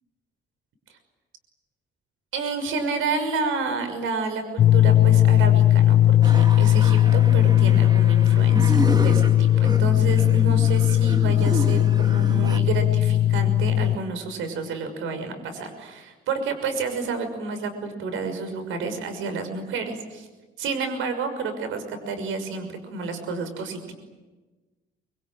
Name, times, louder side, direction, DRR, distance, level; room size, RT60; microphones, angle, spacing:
voice 1, 2.3-20.3 20.6-23.9, right 4 dB, 85° right, 8 dB, 6.0 m, -30 dB
sound 1, 4.6-14.0, left 12 dB, 55° left, 0.9 m, -18 dB
sound 2, 6.2-12.6, right 2 dB, 20° right, 2.6 m, -32 dB
26.0 x 23.5 x 9.0 m, 1.2 s
cardioid pair, 90°, 20 cm